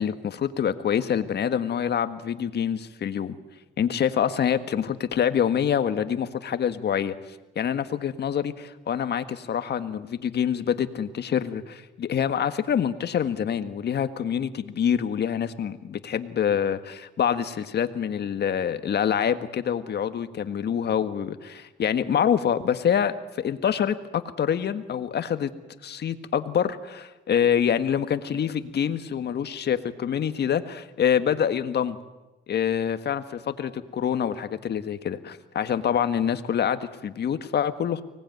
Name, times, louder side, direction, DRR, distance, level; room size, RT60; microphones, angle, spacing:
voice 1, 0.0-3.4 3.8-7.1 7.5-25.5 25.8-32.0 32.5-33.2 33.6-38.0, left 8 dB, 55° left, 10 dB, 1.6 m, -26 dB
24.5 x 19.0 x 9.4 m, 1.1 s
cardioid pair, 90°, 20 cm